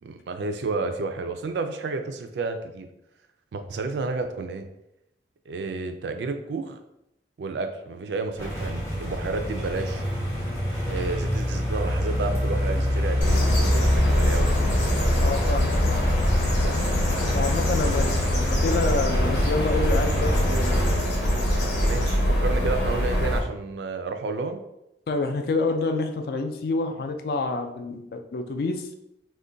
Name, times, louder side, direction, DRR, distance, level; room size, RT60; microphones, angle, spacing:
voice 1, 0.0-2.9 3.5-4.7 5.5-6.8 7.4-10.0 10.9-14.6 16.6-17.0 21.8-24.6, right 3 dB, 70° right, 7 dB, 0.3 m, -31 dB
sound 1, 8.4-21.0, left 1 dB, 15° left, 0.7 m, -26 dB
sound 2, 13.2-23.4, equal, 85° left, 0.8 m, -24 dB
voice 2, 15.2-15.7 17.3-20.8 25.1-28.9, left 3 dB, 55° left, 6 dB, 0.3 m, -28 dB
2.5 x 2.2 x 3.7 m, 0.84 s
head